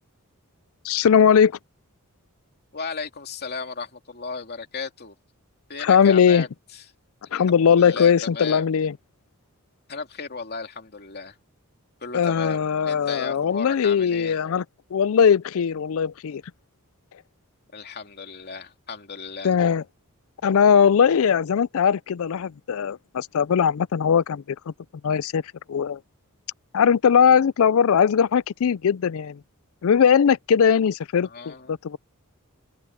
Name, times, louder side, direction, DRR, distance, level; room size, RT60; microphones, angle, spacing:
voice 1, 0.8-1.6 5.8-6.5 7.3-9.0 12.1-14.6 14.9-16.4 19.4-19.8 20.4-24.7 25.0-25.4 25.7-26.0 26.7-29.4 29.8-32.0, left 7 dB, 65° left, 0.4 m, -20 dB
voice 2, 2.7-5.1 5.7-6.5 6.7-6.8 7.2-8.7 9.9-11.4 12.0-14.4 17.7-19.6 31.2-31.7, left 5 dB, 45° left, 2.7 m, -35 dB
head